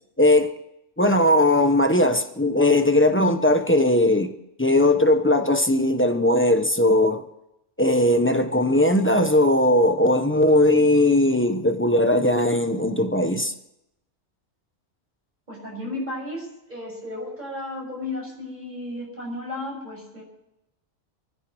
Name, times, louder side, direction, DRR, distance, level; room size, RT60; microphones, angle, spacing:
voice 1, 0.2-0.5 1.0-4.3 4.6-7.2 7.8-13.5, left 1 dB, 10° left, 0.9 m, -19 dB
voice 2, 15.5-20.2, left 2 dB, 40° right, 6.2 m, -34 dB
24.0 x 15.0 x 3.1 m
omnidirectional pair, 1.2 m